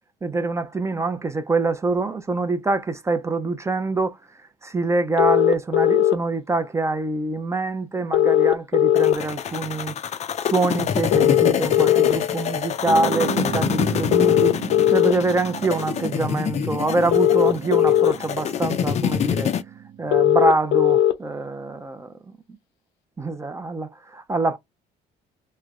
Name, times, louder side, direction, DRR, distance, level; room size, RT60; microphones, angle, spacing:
voice 1, 0.2-9.9 10.4-14.6 14.9-19.5 20.0-22.4 23.2-24.6, right 3 dB, 15° right, 0.5 m, -25 dB
sound 1, 5.2-6.1 8.1-9.1 11.1-12.1 14.1-15.1 17.1-18.1 20.1-21.1, left 12 dB, 85° left, 0.6 m, -17 dB
sound 2, 9.0-19.6, left 8 dB, 40° left, 0.4 m, -26 dB
sound 3, 12.8-20.5, right 8 dB, 65° right, 0.7 m, -35 dB
3.2 x 2.0 x 3.6 m
cardioid pair, 110°, 17 cm